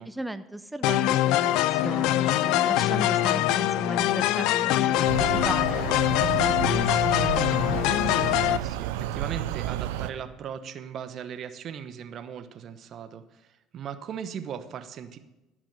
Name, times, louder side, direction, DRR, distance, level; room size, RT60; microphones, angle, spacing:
voice 1, 0.0-7.8, right 1 dB, 5° right, 11 dB, 0.7 m, -36 dB
sound 1, 0.8-8.6, left 14 dB, 70° left, 0.4 m, -23 dB
sound 2, 5.1-10.1, right 12 dB, 80° right, 0.6 m, -31 dB
voice 2, 8.4-13.5 13.7-15.2, right 8 dB, 55° right, 11 dB, 1.0 m, -38 dB
14.5 x 6.1 x 6.8 m, 0.98 s
hypercardioid pair, 65°, 0 cm